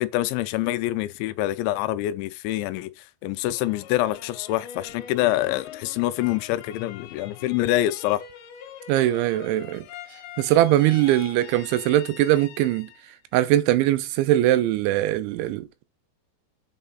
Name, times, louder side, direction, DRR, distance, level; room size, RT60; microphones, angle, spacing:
voice 1, 0.0-8.2, left 15 dB, 85° left, 3.0 m, -26 dB
sound 1, 3.4-13.2 13.6-14.3, left 9 dB, 70° left, 2.9 m, -44 dB
voice 2, 8.9-9.9 10.4-12.9 13.3-15.8, right 14 dB, 85° right, 3.1 m, -21 dB
7.9 x 4.8 x 3.9 m
omnidirectional pair, 5.2 m